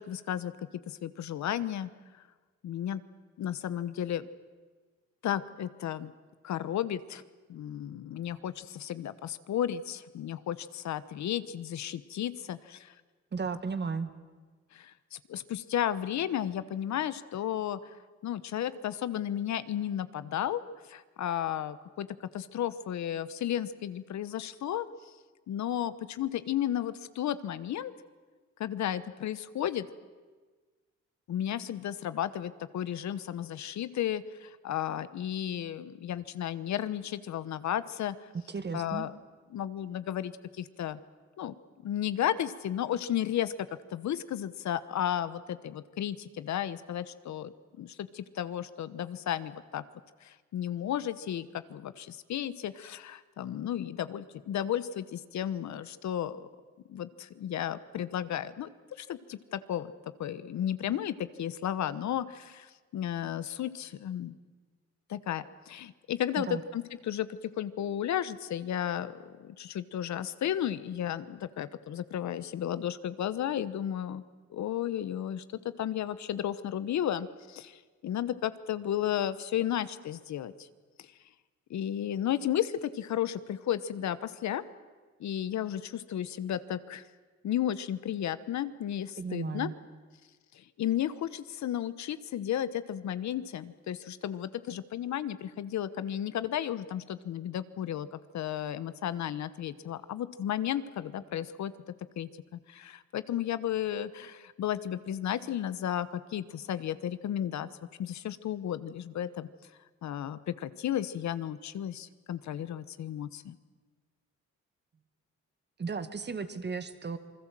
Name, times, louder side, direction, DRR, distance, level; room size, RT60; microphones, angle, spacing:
voice 1, 0.0-1.9 2.6-3.0 3.4-4.3 5.2-6.1 6.4-7.2 7.5-12.9 14.7-17.9 18.2-20.6 20.9-22.1 22.3-24.9 25.5-27.9 28.6-29.9 31.3-38.2 38.7-39.1 39.5-41.0 41.4-41.5 41.8-43.5 43.9-47.5 47.8-49.8 50.2-56.5 56.9-64.4 65.1-74.2 74.5-80.7 81.0-81.1 81.7-84.6 85.2-87.0 87.4-89.7 90.5-101.7 102.2-107.7 108.0-109.5 110.0-113.5, left 10 dB, 65° left, 14 dB, 1.1 m, -33 dB
voice 2, 13.3-14.1 38.5-39.1 66.4-66.6 89.2-89.7 115.8-117.2, right 5 dB, 35° right, 10 dB, 1.8 m, -34 dB
27.5 x 20.5 x 7.6 m, 1.4 s
cardioid pair, 90°, 30 cm